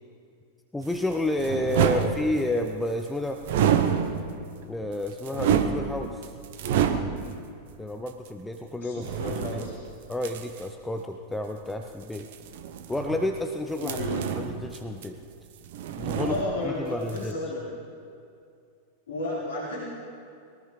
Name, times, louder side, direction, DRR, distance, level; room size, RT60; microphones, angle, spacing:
voice 1, 0.7-3.4 4.6-6.2 7.8-9.7 10.1-12.3 12.9-14.0 14.4-15.2 16.0-16.4 16.6-17.3, left 1 dB, 5° left, 4 dB, 0.7 m, -30 dB
sound 1, 0.8-2.7 3.4-4.5 4.9-7.4 8.1-8.2 9.0-10.7 12.0-13.4 13.8-15.4 15.6-16.8 17.1-17.3, right 8 dB, 55° right, 0.9 m, -28 dB
voice 2, 1.8-2.1 8.8-9.8 13.8-14.2 16.1-17.6 19.1-19.8, left 2 dB, 65° left, -8 dB, 4.8 m, -33 dB
22.5 x 19.0 x 3.3 m, 2.4 s
figure-of-eight pair, 90°, 0 cm